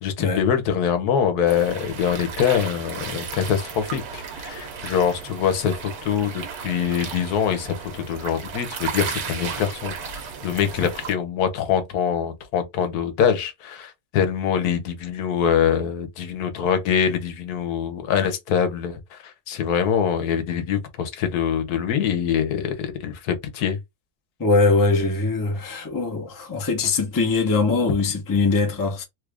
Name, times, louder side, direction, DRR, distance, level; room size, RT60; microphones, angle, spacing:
voice 1, 0.0-9.9 10.4-23.8, left 8 dB, 80° left, 1.2 m, -24 dB
sound 1, 1.5-11.1, right 6 dB, 75° right, 1.4 m, -34 dB
voice 2, 24.4-29.0, left 3 dB, 20° left, 0.5 m, -21 dB
3.2 x 2.4 x 3.3 m
omnidirectional pair, 1.6 m